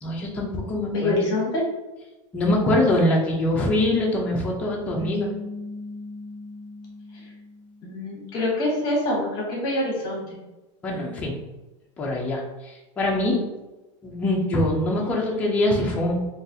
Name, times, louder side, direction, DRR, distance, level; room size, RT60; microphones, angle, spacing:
voice 1, 0.0-1.2 2.3-5.3 10.8-11.3 12.0-13.4 14.0-16.3, left 1 dB, 10° left, -3 dB, 0.4 m, -23 dB
voice 2, 0.9-1.6 7.1-7.3 7.8-10.2, left 2 dB, 25° left, -3 dB, 0.9 m, -25 dB
sound 1, 5.0-8.3, left 2 dB, 25° right, 0.8 m, -38 dB
3.9 x 2.4 x 2.6 m, 1.1 s
supercardioid pair, 180°, 16 cm